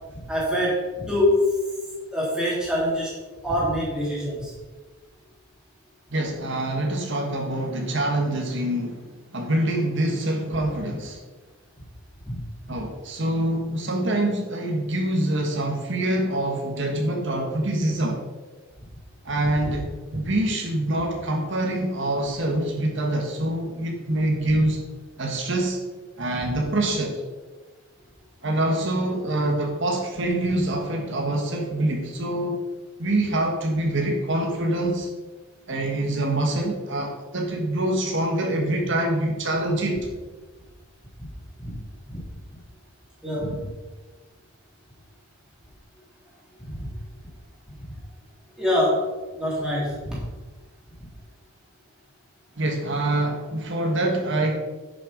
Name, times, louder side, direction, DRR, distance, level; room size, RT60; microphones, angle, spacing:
voice 1, 0.1-1.6 2.1-3.1 3.4-4.5 12.2-12.4 24.5-24.6 26.4-26.5 41.2-41.3 41.6-41.7 42.1-42.2 42.5-42.6 43.2-43.7 46.6-46.9 48.6-49.1 49.4-50.2, left 1 dB, 5° right, -6 dB, 3.1 m, -25 dB
voice 2, 6.1-11.2 12.7-18.2 19.2-19.9 20.1-24.8 25.2-25.8 26.2-27.2 28.4-32.6 33.0-35.1 35.7-40.1 52.6-54.6, right 1 dB, 55° right, 1 dB, 1.4 m, -25 dB
11.0 x 6.7 x 5.1 m, 1.3 s
head